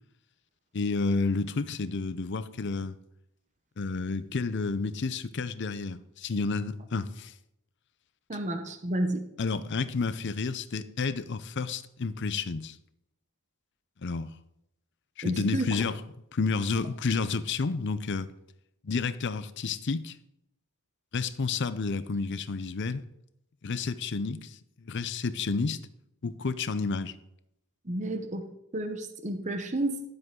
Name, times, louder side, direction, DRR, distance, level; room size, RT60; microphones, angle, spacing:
voice 1, 0.7-3.0 3.8-7.3 9.4-12.8 14.0-14.3 15.2-16.0 16.3-18.3 18.8-20.2 21.1-23.0 23.6-25.8 26.2-27.1, left 4 dB, 50° left, 0.6 m, -30 dB
voice 2, 8.3-9.2 15.2-15.6 27.8-30.0, right 1 dB, 30° right, 0.9 m, -31 dB
12.0 x 7.8 x 3.8 m
head